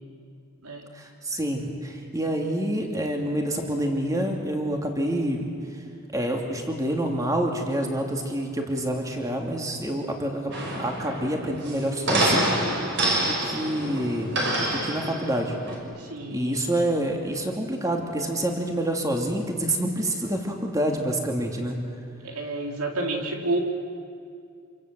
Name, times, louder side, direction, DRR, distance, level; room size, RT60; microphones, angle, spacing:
voice 1, 0.9-5.4 6.1-10.5 10.8-12.9 13.2-15.5 16.3-21.8, right 1 dB, 15° right, 2 dB, 2.8 m, -27 dB
sound 1, 10.5-15.8, right 1 dB, 50° right, 5.8 m, -26 dB
voice 2, 16.0-16.6 22.2-23.6, right 2 dB, 85° right, 1 dB, 4.0 m, -30 dB
27.0 x 26.0 x 7.7 m, 2.4 s
head